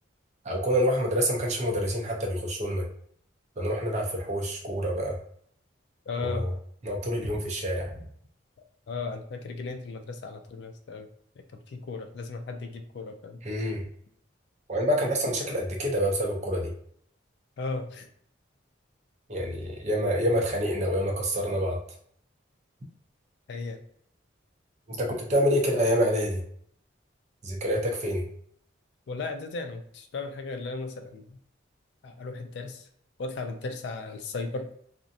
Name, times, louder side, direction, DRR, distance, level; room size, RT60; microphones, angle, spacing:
voice 1, 0.4-2.9 3.6-5.2 6.2-6.5 6.8-7.9 13.4-13.8 14.7-16.7 19.3-21.8 24.9-26.4 27.4-28.3, equal, 35° right, 0 dB, 0.5 m, -27 dB
voice 2, 6.1-6.4 8.9-11.1 11.4-13.4 17.6-18.1 23.5-23.8 29.1-31.4 32.0-32.8 33.2-34.7, left 3 dB, 55° left, 6 dB, 0.3 m, -36 dB
2.5 x 2.0 x 2.6 m, 0.64 s
head